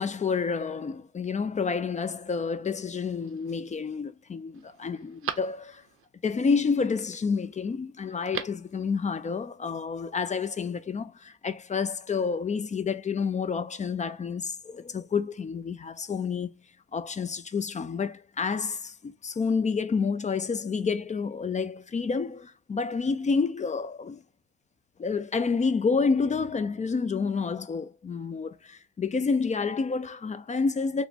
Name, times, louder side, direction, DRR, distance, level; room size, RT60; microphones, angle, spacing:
voice 1, 0.0-5.8 6.2-16.5 16.9-24.2 25.0-31.1, left 5 dB, 25° left, 0.4 m, -29 dB
Telephone, 2.9-3.5 4.1-4.2 4.5-6.1 8.1-8.7 9.0-9.1, right 9 dB, 45° right, 0.5 m, -39 dB
3.3 x 3.0 x 2.4 m
cardioid pair, 90°, 30 cm